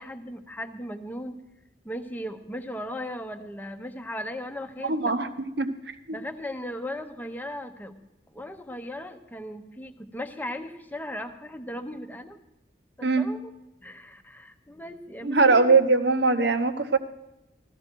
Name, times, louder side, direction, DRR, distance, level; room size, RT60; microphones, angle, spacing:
voice 1, 0.0-1.4 1.8-5.1 6.1-8.0 8.3-12.4 13.0-13.5 13.8-15.7, left 1 dB, 10° left, 7 dB, 0.8 m, -37 dB
voice 2, 4.8-5.3 5.6-5.7 6.1-6.2 13.0-13.3 15.2-17.0, right 3 dB, 70° right, 9 dB, 1.0 m, -21 dB
15.5 x 13.0 x 4.5 m, 0.93 s
head